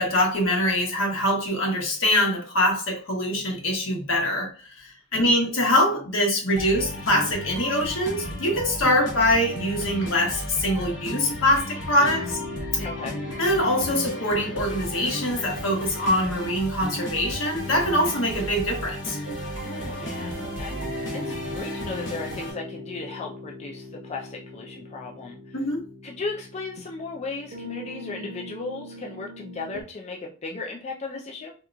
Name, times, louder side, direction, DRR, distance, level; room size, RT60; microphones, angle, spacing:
voice 1, 0.0-12.4 13.4-19.2 25.5-25.8, left 1 dB, 85° left, 0 dB, 1.2 m, -24 dB
sound 1, 6.5-22.5, equal, 65° left, 1.1 m, -34 dB
sound 2, 12.0-29.8, left 1 dB, 55° right, 0.7 m, -40 dB
voice 2, 12.8-13.2 19.6-25.6 26.0-31.5, left 3 dB, 35° left, 0 dB, 0.4 m, -36 dB
3.7 x 2.9 x 2.3 m, 0.39 s
head